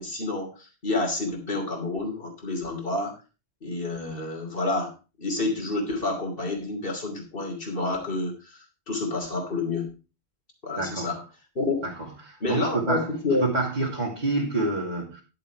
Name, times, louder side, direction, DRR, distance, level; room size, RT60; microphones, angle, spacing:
voice 1, 0.0-3.2 3.6-9.9 10.6-11.2 11.5-11.8 12.4-13.5, left 2 dB, 55° left, 3.2 m, -29 dB
voice 2, 10.7-11.1 11.8-11.9 12.2-13.1 13.4-15.2, right 2 dB, 40° right, 2.7 m, -27 dB
11.0 x 6.9 x 4.7 m
omnidirectional pair, 1.1 m